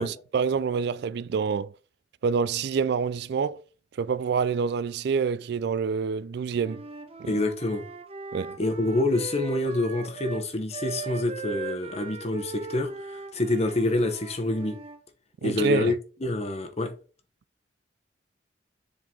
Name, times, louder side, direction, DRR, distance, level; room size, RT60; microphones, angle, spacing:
voice 1, 0.0-1.7 2.2-3.6 4.0-6.8 7.2-7.4 8.3-8.6 15.4-15.9, right 6 dB, 65° right, 0.3 m, -27 dB
Wind instrument woodwind instrument, 6.6-10.5 10.7-15.0, right 5 dB, 35° right, 0.8 m, -39 dB
voice 2, 7.3-7.8 8.6-14.8 15.4-16.9, left 2 dB, 35° left, 1.0 m, -27 dB
7.3 x 3.8 x 3.8 m
head